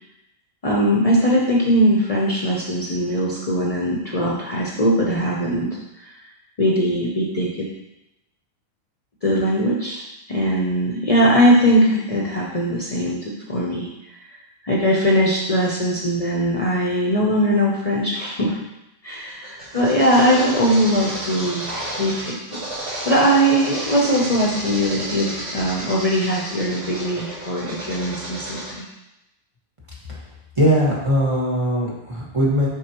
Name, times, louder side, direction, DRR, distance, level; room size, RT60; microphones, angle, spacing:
voice 1, 0.6-6.1 6.6-7.7 9.2-10.0 10.3-13.9 14.6-18.6 19.0-21.7 22.0-22.4 22.8-28.8, equal, 40° left, -3 dB, 0.8 m, -20 dB
sound 1, 19.1-28.7, right 1 dB, 60° right, 1.7 m, -31 dB
voice 2, 30.6-32.7, equal, 30° right, -6 dB, 1.6 m, -20 dB
6.4 x 5.4 x 3.0 m, 0.90 s
omnidirectional pair, 1.0 m